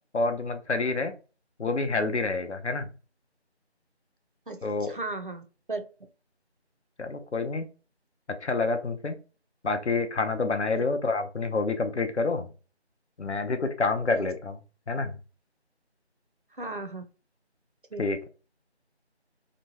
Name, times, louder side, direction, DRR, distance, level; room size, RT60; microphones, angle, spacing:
voice 1, 0.1-1.1 1.6-2.9 4.6-5.0 7.0-7.7 8.4-9.2 9.6-12.5 13.2-14.6 14.9-15.2 18.0-18.3, left 3 dB, 80° left, 7 dB, 0.7 m, -28 dB
voice 2, 4.5-5.4 5.7-5.8 10.7-10.8 14.1-14.3 16.6-17.0 17.9-18.0, right 2 dB, 50° right, 7 dB, 0.5 m, -35 dB
2.9 x 2.2 x 2.7 m, 0.34 s
figure-of-eight pair, 170°, 34 cm